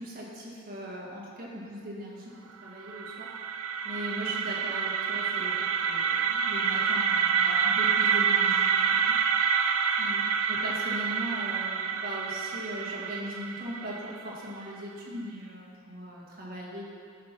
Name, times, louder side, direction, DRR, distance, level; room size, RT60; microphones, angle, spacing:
voice 1, 0.0-2.3 2.6-3.3 3.8-5.5 5.8-9.2 10.0-10.2 10.5-16.8, equal, 40° right, -4 dB, 1.8 m, -39 dB
sound 1, 2.7-14.6, right 6 dB, 75° right, 0.5 m, -27 dB
10.5 x 5.5 x 6.0 m, 2.3 s
head